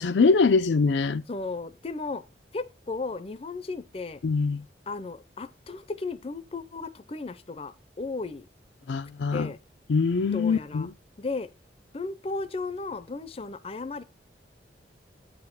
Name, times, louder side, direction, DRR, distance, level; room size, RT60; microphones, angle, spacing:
voice 1, 0.0-1.2 4.2-4.6 8.9-9.5 9.9-10.9, left 4 dB, 85° left, 0.5 m, -23 dB
voice 2, 1.3-2.2 2.5-4.2 4.9-8.4 9.3-9.6 10.3-10.9 11.2-11.5 11.9-14.0, left 3 dB, 35° left, 0.5 m, -35 dB
8.4 x 4.3 x 5.4 m
head